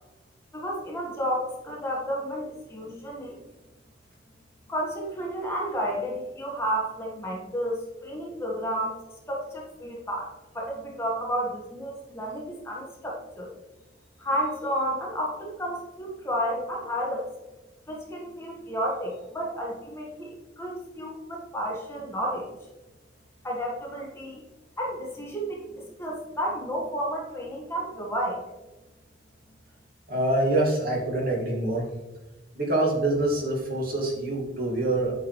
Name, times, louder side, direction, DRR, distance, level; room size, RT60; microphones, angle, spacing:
voice 1, 0.5-3.4 4.7-9.0 9.3-13.5 14.2-17.3 17.9-22.6 23.4-24.4 24.8-28.4, equal, 15° left, -3 dB, 1.5 m, -31 dB
voice 2, 30.1-31.9 32.6-35.1, right 2 dB, 50° right, -3 dB, 2.1 m, -25 dB
8.4 x 6.1 x 3.2 m, 1.1 s
head